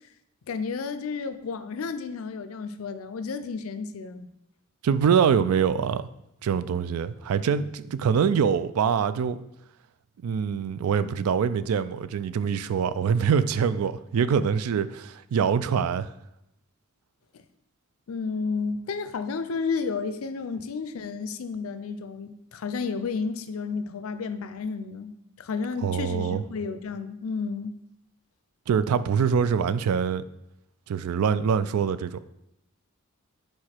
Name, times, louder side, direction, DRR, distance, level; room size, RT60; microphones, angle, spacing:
voice 1, 0.5-4.3 18.1-27.8, left 5 dB, 70° left, 0.4 m, -32 dB
voice 2, 4.8-6.1 6.4-9.4 10.2-16.1 25.8-26.4 28.7-30.2 30.9-32.2, right 7 dB, 85° right, 0.3 m, -24 dB
4.8 x 4.6 x 4.4 m
head